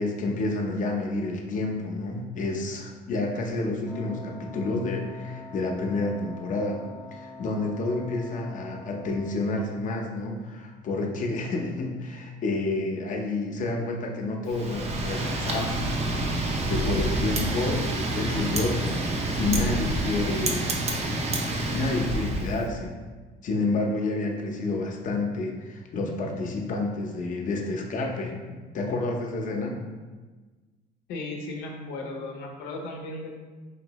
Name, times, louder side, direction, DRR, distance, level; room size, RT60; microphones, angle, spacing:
voice 1, 0.0-6.8 7.1-15.7 16.7-20.9 21.7-22.9 23.4-29.8, left 2 dB, 50° left, 1 dB, 0.7 m, -29 dB
Wind instrument woodwind instrument, 3.8-9.6, left 2 dB, 10° left, 0.5 m, -44 dB
Wind, 14.5-22.6, right 1 dB, 40° right, 0.5 m, -28 dB
voice 2, 31.1-33.3, left 2 dB, 90° left, 1 dB, 0.7 m, -36 dB
4.3 x 2.6 x 3.0 m, 1.3 s
cardioid pair, 110°, 17 cm